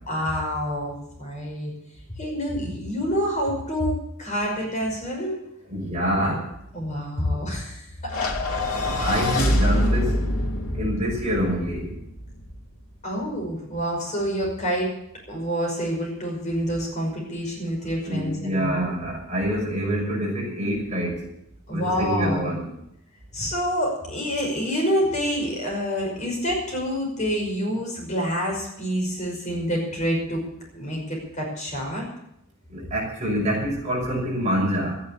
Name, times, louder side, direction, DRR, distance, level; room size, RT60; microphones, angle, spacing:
voice 1, 0.1-0.9 1.2-1.7 2.2-5.4 6.7-8.4 9.1-9.2 13.0-14.9 15.3-18.9 21.7-22.5 23.3-30.4 30.7-32.1, equal, 35° left, -1 dB, 5.7 m, -27 dB
voice 2, 5.7-6.4 9.0-10.1 10.7-11.9 18.1-21.2 21.7-22.7 32.7-34.9, equal, 35° right, -2 dB, 6.1 m, -26 dB
sound 1, 8.1-12.5, left 1 dB, 90° left, 2.7 m, -25 dB
13.5 x 10.0 x 8.7 m, 0.79 s
head